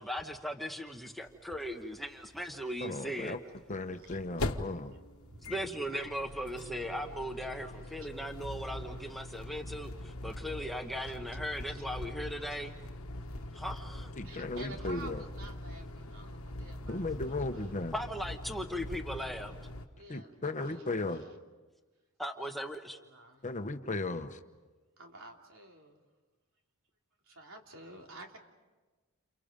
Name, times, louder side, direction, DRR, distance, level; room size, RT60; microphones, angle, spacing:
voice 1, 0.0-3.4 5.5-12.7 13.5-14.1 17.9-19.5 22.2-23.0, equal, ahead, 4 dB, 1.1 m, -38 dB
sound 1, 1.3-1.4 1.6-1.7 3.6-19.9, left 1 dB, 70° left, 1.3 m, -42 dB
voice 2, 2.8-3.4 3.7-4.9 14.1-15.2 16.9-18.0 20.1-21.2 23.4-24.4, left 2 dB, 35° left, 7 dB, 1.1 m, -36 dB
voice 3, 5.2-6.1 7.6-7.9 9.5-9.6 11.7-11.8 13.1-13.7 14.2-17.7 19.9-21.2 22.4-23.4 25.0-26.0 27.2-28.4, right 2 dB, 65° right, 1 dB, 3.2 m, -51 dB
30.0 x 29.0 x 5.2 m, 1.3 s
head